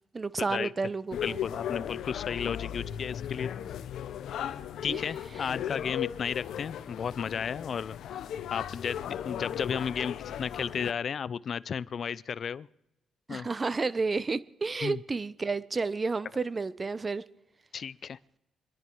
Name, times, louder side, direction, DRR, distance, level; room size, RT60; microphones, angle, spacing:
voice 1, 0.1-1.4 4.9-5.0 13.3-17.2, right 4 dB, 30° right, 0.7 m, -31 dB
sound 1, 1.1-10.9, left 10 dB, 75° left, 0.9 m, -37 dB
voice 2, 1.1-3.5 4.8-8.2 8.5-12.7 13.3-13.5 14.8-15.0 17.7-18.2, left 7 dB, 50° left, 0.5 m, -34 dB
26.5 x 10.5 x 4.6 m
cardioid pair, 90°, 0 cm